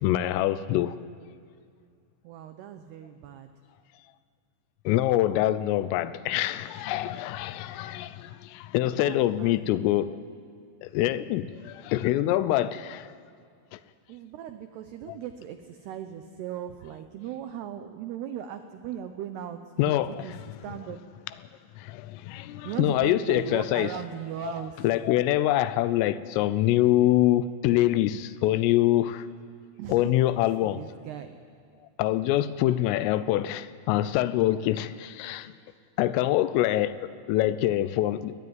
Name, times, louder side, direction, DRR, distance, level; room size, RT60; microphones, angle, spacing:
voice 1, 0.0-1.0 4.9-10.2 10.8-13.1 13.7-13.8 15.1-15.2 19.8-20.5 20.8-21.0 21.8-24.0 24.4-24.5 24.8-29.3 29.9-30.8 32.0-35.5 36.0-38.3, left 14 dB, 80° left, 3.2 m, -25 dB
voice 2, 2.2-3.5 8.9-9.9 14.1-21.0 22.6-24.8 29.8-30.1 30.4-31.3, right 10 dB, 85° right, 2.3 m, -38 dB
21.5 x 21.0 x 9.5 m
omnidirectional pair, 6.0 m